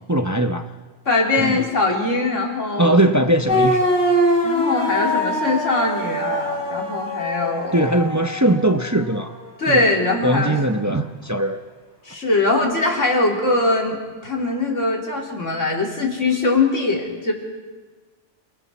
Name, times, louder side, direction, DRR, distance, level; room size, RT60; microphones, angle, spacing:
voice 1, 0.1-0.7 1.4-1.6 2.8-3.9 7.7-9.3 9.7-9.8 10.2-11.6, right 1 dB, 15° right, 6 dB, 0.7 m, -20 dB
voice 2, 1.1-3.0 4.4-7.9 9.6-10.6 12.1-14.0 14.2-17.3, left 2 dB, 80° left, -1 dB, 3.6 m, -21 dB
sound 1, 3.5-9.2, equal, 40° left, 3.2 m, -23 dB
28.0 x 22.5 x 4.2 m, 1.3 s
omnidirectional pair, 1.3 m